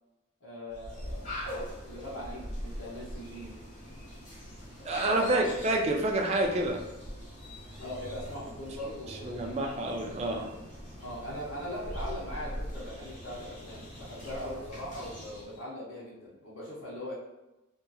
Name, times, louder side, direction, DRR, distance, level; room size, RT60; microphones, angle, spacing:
voice 1, 0.4-1.4 1.8-3.6 5.1-5.3 7.8-9.8 11.0-17.1, equal, 75° left, -6 dB, 0.9 m, -40 dB
sound 1, 0.7-15.6, equal, 40° left, 0.9 m, -42 dB
voice 2, 4.8-6.8 9.2-10.5, right 1 dB, 30° right, 2 dB, 0.3 m, -28 dB
2.7 x 2.4 x 2.3 m, 0.97 s
head